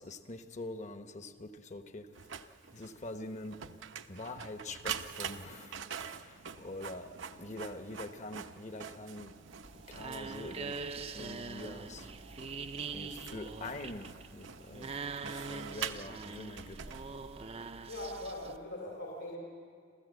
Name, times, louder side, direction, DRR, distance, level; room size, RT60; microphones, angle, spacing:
voice 1, 0.0-2.1 2.7-3.6 4.1-9.3 9.9-12.1 12.9-16.8, left 2 dB, 40° left, 8 dB, 1.1 m, -45 dB
Printer, 2.1-17.5, right 7 dB, 75° right, 0.8 m, -45 dB
sound 1, 9.5-18.6, right 4 dB, 30° right, 0.5 m, -43 dB
voice 2, 17.9-19.4, left 1 dB, 75° left, -2 dB, 4.0 m, -41 dB
27.5 x 14.5 x 8.2 m, 2.1 s
head